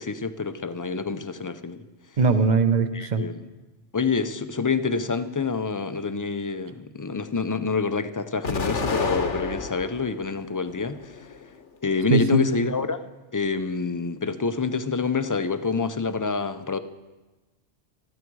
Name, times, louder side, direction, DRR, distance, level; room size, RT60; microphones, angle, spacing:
voice 1, 0.0-1.8 2.9-3.4 3.9-11.3 11.8-13.0 13.3-16.8, left 4 dB, 30° left, 11 dB, 0.3 m, -27 dB
voice 2, 2.2-3.2 12.1-12.4, right 4 dB, 40° right, 10 dB, 0.9 m, -20 dB
Explosion, 8.4-10.1 10.6-11.5, left 4 dB, 85° left, 1.5 m, -29 dB
20.0 x 13.5 x 4.7 m, 1.2 s
omnidirectional pair, 1.2 m